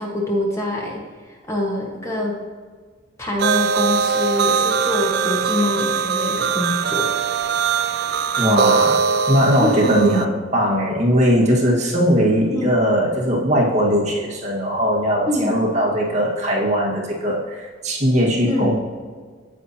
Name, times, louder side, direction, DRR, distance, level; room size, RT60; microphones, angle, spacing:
voice 1, 0.0-2.4 3.2-7.1 8.4-8.8 9.6-10.2 12.5-12.7 15.3-15.6 18.5-18.7, left 1 dB, 15° left, -2 dB, 1.4 m, -24 dB
sound 1, 3.4-10.2, right 6 dB, 55° right, 0.4 m, -21 dB
voice 2, 8.4-9.0 9.3-18.7, equal, 40° right, -3 dB, 1.6 m, -19 dB
9.1 x 8.4 x 2.8 m, 1.5 s
head